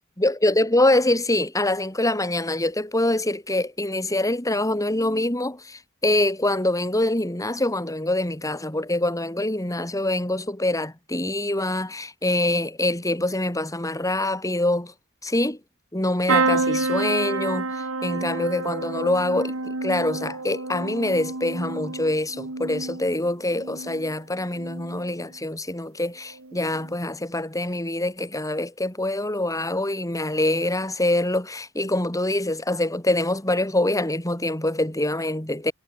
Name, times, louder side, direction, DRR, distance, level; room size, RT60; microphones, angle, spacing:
voice 1, 0.2-14.9 15.2-15.6 15.9-17.7 18.0-35.7, left 1 dB, 15° left, 4.6 m, -25 dB
sound 1, 16.3-24.1 24.5-25.1 26.3-26.5 26.8-26.9, right 3 dB, 80° right, 2.6 m, -28 dB
head